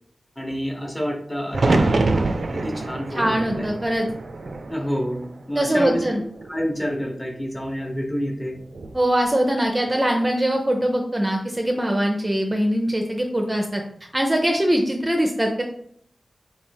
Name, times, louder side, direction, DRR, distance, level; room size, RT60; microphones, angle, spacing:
voice 1, 0.4-2.1 2.5-3.7 4.7-6.0 6.5-8.5, equal, 15° left, 1 dB, 0.9 m, -28 dB
sound 1, 1.5-5.6 5.9-6.7 8.6-9.0, right 3 dB, 75° right, 0.4 m, -25 dB
voice 2, 3.2-4.1 5.6-6.2 8.9-13.8 14.1-15.6, right 1 dB, 20° right, 2 dB, 0.5 m, -22 dB
3.1 x 2.8 x 4.6 m, 0.66 s
wide cardioid pair, 80°, 0 cm